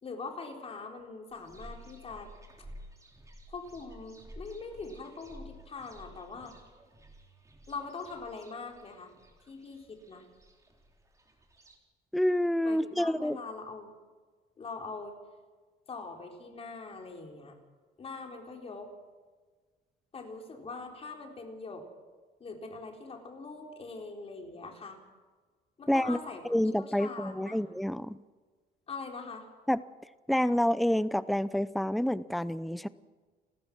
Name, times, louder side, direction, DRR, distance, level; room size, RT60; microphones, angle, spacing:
voice 1, 0.0-2.3 3.5-6.5 7.7-9.1 9.5-10.3 12.6-13.9 14.6-15.2 15.9-17.6 18.0-18.9 20.1-21.8 22.4-25.0 25.8-26.4 26.7-27.6 28.9-29.5, left 4 dB, 35° left, 3 dB, 4.1 m, -42 dB
sound 1, 1.3-11.8, equal, 20° right, 3.5 m, -52 dB
voice 2, 12.1-13.4 25.9-26.2 26.4-28.2 29.7-29.8 30.3-32.9, left 1 dB, ahead, 17 dB, 0.6 m, -28 dB
30.0 x 14.5 x 6.2 m, 1.4 s
cardioid pair, 110°, 17 cm